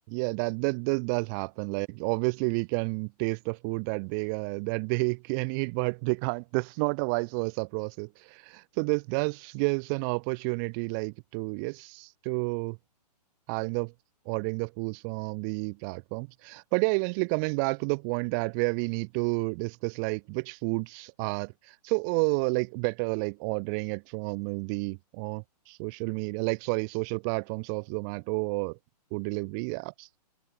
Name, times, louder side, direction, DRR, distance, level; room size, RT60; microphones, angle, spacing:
voice 1, 0.1-12.8 13.5-13.9 14.3-28.8 29.1-30.1, right 36 dB, 25° right, 0.8 m, -30 dB
open air
hypercardioid pair, 145°, 21 cm